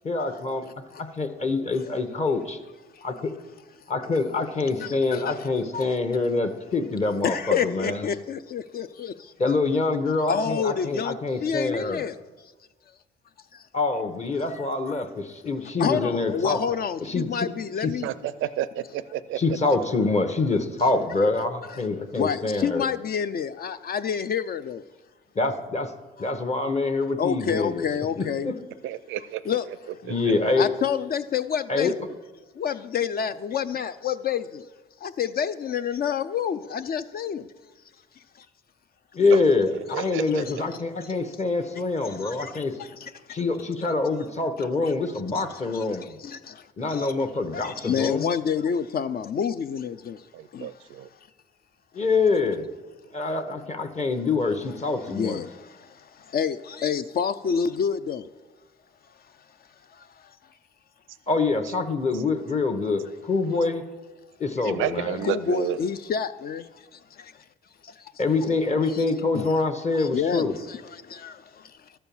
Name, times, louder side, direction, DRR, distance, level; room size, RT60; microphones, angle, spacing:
voice 1, 0.0-0.7 1.2-2.6 3.0-3.1 3.9-8.1 9.4-12.0 13.7-16.6 17.0-17.5 17.8-17.9 19.4-22.9 25.3-25.9 26.2-27.9 28.2-28.5 30.1-30.7 31.7-31.9 39.1-42.8 43.3-46.2 46.8-48.3 51.9-52.7 53.1-55.4 61.3-63.8 64.4-65.2 68.2-70.5, left 3 dB, 35° left, 0.9 m, -25 dB
voice 2, 4.8-5.5 5.7-6.0 7.2-9.3 10.3-12.2 13.5-13.6 14.9-15.0 15.8-18.1 21.7-21.8 22.1-24.8 26.2-26.3 27.2-28.5 29.5-29.6 30.6-32.1 32.6-34.7 35.0-37.5 38.4-38.5 42.0-43.4 44.8-44.9 45.3-45.5 45.7-47.1 47.5-50.3 50.5-50.7 55.1-58.3 59.9-60.4 65.2-67.4 67.8-68.1 68.9-69.0 69.4-69.6 69.9-71.8, left 7 dB, 50° left, 0.4 m, -29 dB
voice 3, 18.0-19.4 28.8-29.8 30.1-30.2 39.3-39.4 39.9-40.6 50.3-51.1 64.6-65.8, right 11 dB, 85° right, 0.5 m, -31 dB
12.5 x 4.4 x 7.0 m
cardioid pair, 90°, 20 cm